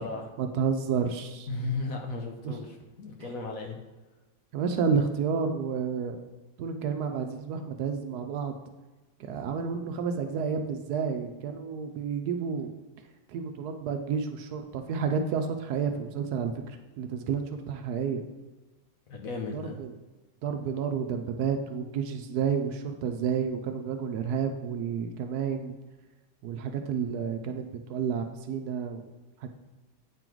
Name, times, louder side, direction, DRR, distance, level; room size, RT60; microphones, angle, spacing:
voice 1, 0.4-1.5 2.4-2.6 3.2-3.3 4.5-6.2 6.6-8.5 9.3-12.7 13.3-18.2 19.5-19.9 20.4-25.7 26.4-29.0 29.4-29.5, right 6 dB, 70° right, 6 dB, 1.1 m, -30 dB
voice 2, 1.5-3.8 19.1-19.8, left 3 dB, 60° left, 1 dB, 1.1 m, -35 dB
8.3 x 3.8 x 4.5 m, 1.2 s
omnidirectional pair, 1.8 m